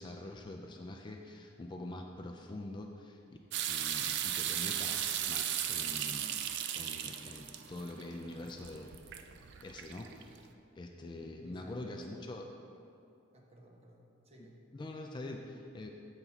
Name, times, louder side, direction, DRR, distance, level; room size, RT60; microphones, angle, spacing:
voice 1, 0.0-3.2 3.7-6.3 6.8-9.2 9.6-10.5 10.8-12.5 14.4-15.9, left 2 dB, 25° left, 3 dB, 0.3 m, -45 dB
sound 1, 3.5-10.4, right 10 dB, 60° right, 0.4 m, -36 dB
voice 2, 11.2-12.3 13.3-14.6, right 1 dB, 30° right, -1 dB, 0.9 m, -56 dB
7.3 x 5.9 x 4.0 m, 2.6 s
head